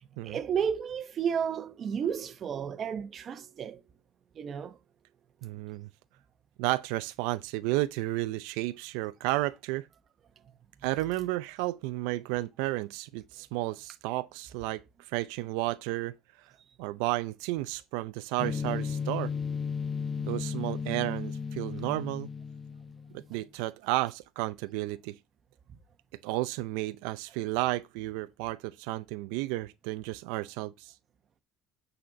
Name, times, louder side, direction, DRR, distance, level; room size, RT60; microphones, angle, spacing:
voice 1, 0.2-3.8 4.4-4.8 20.1-20.2, right 7 dB, 35° right, 0.9 m, -32 dB
voice 2, 5.4-5.9 6.6-9.9 10.8-16.1 16.8-19.3 20.3-22.3 23.1-25.2 26.2-30.9, right 18 dB, 90° right, 0.4 m, -32 dB
sound 1, 18.4-23.3, left 6 dB, 20° left, 0.6 m, -34 dB
8.8 x 4.2 x 5.1 m
cardioid pair, 130°, 0 cm